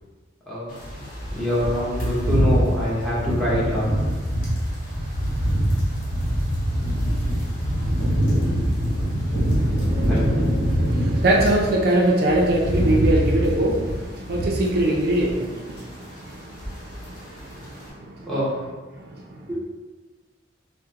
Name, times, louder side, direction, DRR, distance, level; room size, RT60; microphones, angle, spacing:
voice 1, 0.5-1.0 1.3-3.9 10.1-10.3 18.2-18.5 19.5-19.6, equal, ahead, -8 dB, 1.0 m, -25 dB
sound 1, 0.8-11.7 12.1-15.5 15.7-16.0 16.3-17.1 17.4-17.6, equal, 50° left, 1.2 m, -24 dB
voice 2, 9.5-18.3 18.9-19.5, right 1 dB, 55° right, -2 dB, 0.4 m, -24 dB
4.8 x 2.1 x 2.8 m, 1.3 s
head